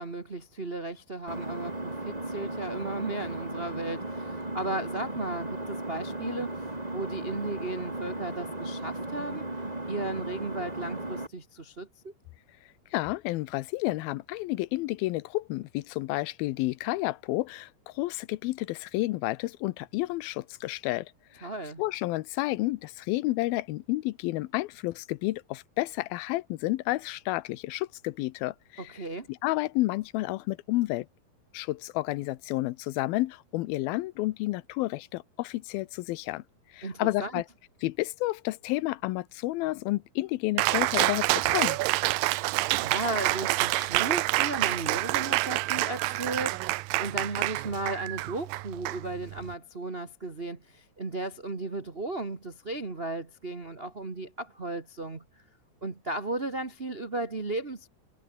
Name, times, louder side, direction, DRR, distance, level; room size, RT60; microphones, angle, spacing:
voice 1, 0.0-6.6 6.9-9.4 9.9-12.1 21.4-21.8 28.8-29.3 36.8-37.3 42.8-55.2 55.8-57.9, right 2 dB, 60° right, 0.6 m, -35 dB
Engine, 1.3-11.3, right 2 dB, 10° right, 3.1 m, -36 dB
voice 2, 12.9-21.5 21.8-28.8 29.4-31.1 31.5-36.4 36.7-37.4 37.8-41.8, left 19 dB, 85° left, 2.6 m, -30 dB
Cheering, 40.6-49.5, right 20 dB, 80° right, 2.3 m, -28 dB
omnidirectional pair, 4.2 m